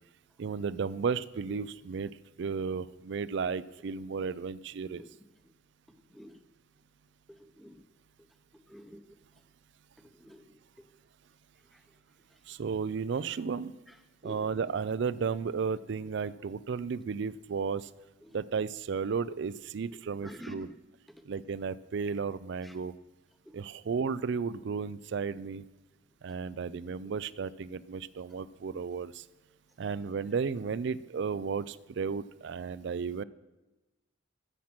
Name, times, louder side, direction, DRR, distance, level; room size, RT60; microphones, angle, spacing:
voice 1, 0.4-5.0 12.5-13.7 14.2-17.9 18.3-20.7 21.3-22.9 23.5-25.6 26.2-29.3 29.8-33.2, right 5 dB, 60° right, 18 dB, 0.4 m, -34 dB
voice 2, 6.1-6.4 7.3-7.8 8.7-9.0 10.2-10.9 14.2-14.5 20.2-20.8 22.6-22.7 23.5-23.6, equal, ahead, 7 dB, 0.7 m, -48 dB
13.5 x 7.3 x 6.0 m, 1.1 s
head